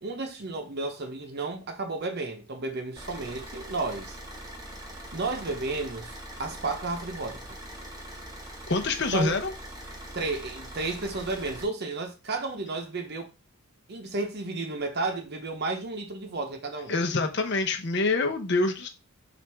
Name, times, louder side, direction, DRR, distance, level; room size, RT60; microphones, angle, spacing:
voice 1, 0.0-4.2 5.1-7.6 9.1-9.4 10.1-13.3 13.9-17.0, right 3 dB, 50° right, 0.7 m, -32 dB
Car / Idling, 3.0-11.6, right 1 dB, 15° right, 0.9 m, -42 dB
voice 2, 8.7-9.5 16.9-18.9, left 3 dB, 50° left, 0.7 m, -26 dB
5.8 x 2.5 x 3.4 m
head